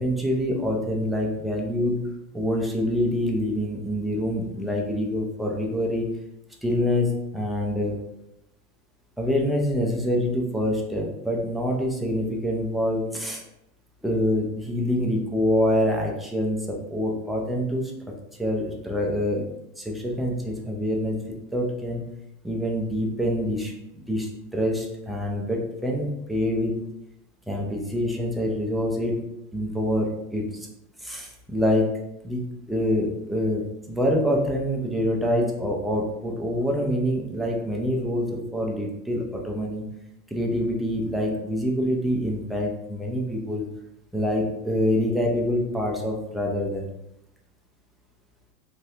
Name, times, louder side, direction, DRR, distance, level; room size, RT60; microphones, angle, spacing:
voice 1, 0.0-2.0 2.3-6.1 6.6-8.0 9.2-13.4 14.0-17.9 18.4-19.5 19.8-21.2 21.5-22.0 22.4-26.8 27.5-29.2 29.5-30.7 31.0-31.9 32.2-39.8 40.3-43.7 44.1-46.9, equal, ahead, -1 dB, 0.3 m, -26 dB
2.7 x 2.3 x 3.3 m, 0.86 s
hypercardioid pair, 90°, 44 cm